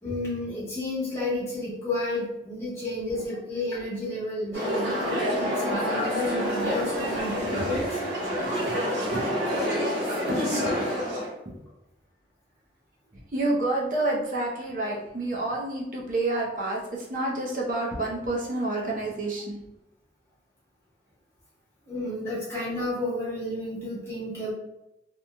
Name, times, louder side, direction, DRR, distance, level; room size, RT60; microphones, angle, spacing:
voice 1, 0.0-8.0 8.4-8.5 21.8-24.5, left 1 dB, 15° left, -9 dB, 1.1 m, -31 dB
sound 1, 4.5-11.3, equal, 85° right, 1.4 m, -27 dB
voice 2, 8.4-9.6 10.6-10.8 11.4-11.6 13.1-19.6, right 2 dB, 50° right, -3 dB, 0.6 m, -29 dB
2.9 x 2.6 x 2.2 m, 0.87 s
head